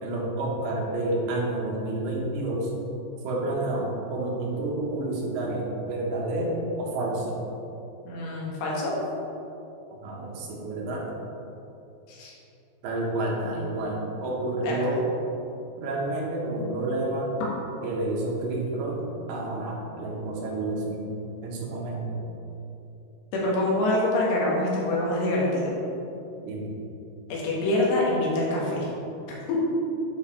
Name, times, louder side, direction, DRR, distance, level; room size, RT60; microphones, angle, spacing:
voice 1, 0.0-2.7 3.2-7.5 10.0-11.1 12.8-15.0 15.8-17.3 17.8-19.0 19.3-21.0 21.4-22.2 26.5-26.7, right 2 dB, 75° right, -2 dB, 3.0 m, -29 dB
voice 2, 8.1-8.9 12.1-12.3 14.6-14.7 23.3-25.8 27.3-28.9 29.5-29.6, left 1 dB, 90° left, -4 dB, 3.7 m, -25 dB
9.5 x 4.7 x 4.3 m, 2.9 s
omnidirectional pair, 4.7 m